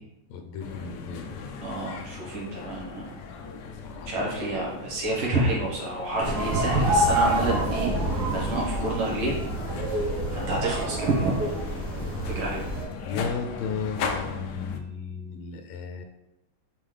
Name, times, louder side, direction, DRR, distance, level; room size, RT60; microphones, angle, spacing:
voice 1, 0.3-1.5 3.8-4.1 6.2-6.4 13.0-16.0, left 5 dB, 90° left, 6 dB, 1.5 m, -34 dB
sound 1, 0.6-14.8, left 4 dB, 70° left, 1.1 m, -38 dB
voice 2, 1.6-3.1 4.1-9.4 10.3-11.4 12.3-12.7, right 2 dB, 90° right, -4 dB, 2.2 m, -28 dB
sound 2, 6.2-12.8, right 1 dB, 55° right, 1.9 m, -27 dB
5.5 x 5.3 x 3.3 m, 0.89 s
omnidirectional pair, 2.2 m